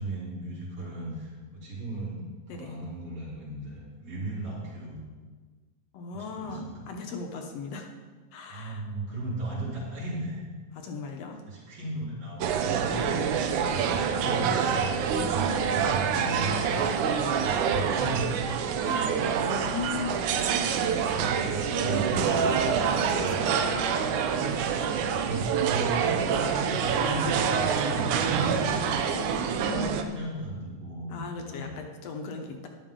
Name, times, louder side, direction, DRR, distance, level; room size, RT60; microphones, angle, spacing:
voice 1, 0.0-2.2 2.5-5.0 6.1-6.7 8.5-10.4 11.5-12.9 13.6-16.8 17.3-18.5 21.1-22.5 23.2-23.7 24.9-29.0 29.5-31.7, right 2 dB, 40° right, -7 dB, 4.4 m, -36 dB
voice 2, 5.9-7.9 8.3-8.8 10.7-11.4 12.9-13.4 15.2-15.8 16.7-17.0 18.7-19.1 19.4-20.3 20.7-21.1 22.5-23.9 27.0-27.3 29.1-29.5 31.1-32.7, left 4 dB, 65° left, 3 dB, 1.8 m, -39 dB
sound 1, 12.4-30.0, right 7 dB, 90° right, 2.2 m, -26 dB
13.0 x 11.0 x 3.7 m, 1.4 s
omnidirectional pair, 3.4 m